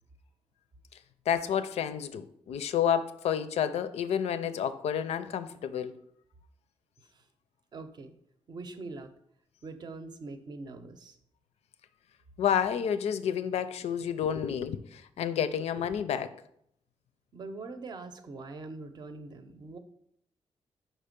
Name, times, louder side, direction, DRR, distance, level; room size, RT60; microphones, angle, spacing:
voice 1, 1.3-5.9 12.4-16.3, left 8 dB, 80° left, 0.5 m, -30 dB
voice 2, 7.7-8.1 8.5-9.1 9.6-11.2 17.3-19.8, right 3 dB, 40° right, 0.6 m, -43 dB
5.1 x 4.3 x 5.1 m
wide cardioid pair, 165°, 11 cm